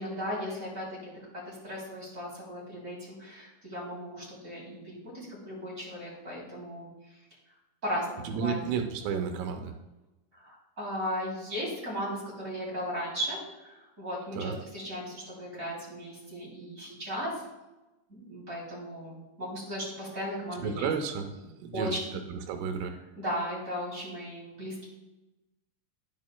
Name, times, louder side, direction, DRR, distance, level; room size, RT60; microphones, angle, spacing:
voice 1, 0.0-6.9 7.8-8.6 10.3-17.3 18.1-20.9 21.7-22.2 23.2-24.9, equal, 20° right, -6 dB, 2.6 m, -36 dB
voice 2, 8.3-9.7 14.3-14.6 20.6-22.0 22.3-22.9, right 6 dB, 85° right, 5 dB, 3.4 m, -32 dB
10.5 x 9.4 x 2.3 m, 1.0 s
omnidirectional pair, 5.6 m